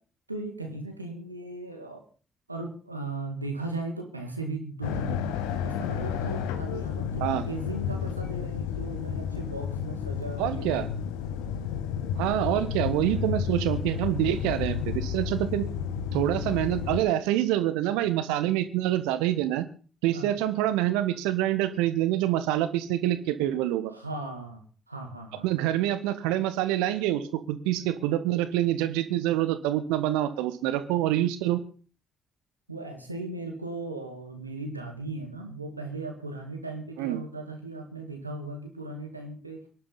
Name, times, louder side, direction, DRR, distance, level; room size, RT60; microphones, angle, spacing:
voice 1, 0.3-2.0 2.5-5.3 5.6-10.7 11.5-11.6 20.1-20.3 23.9-25.7 32.7-39.6, right 2 dB, 90° right, 3 dB, 2.1 m, -37 dB
sound 1, 4.8-17.0, left 8 dB, 70° left, 1.2 m, -31 dB
voice 2, 10.4-10.9 12.2-15.7 16.1-19.6 20.0-23.9 25.4-31.6 37.0-37.2, right 13 dB, 70° right, 12 dB, 1.2 m, -26 dB
23.5 x 11.0 x 4.1 m, 0.39 s
figure-of-eight pair, 45°, 0 cm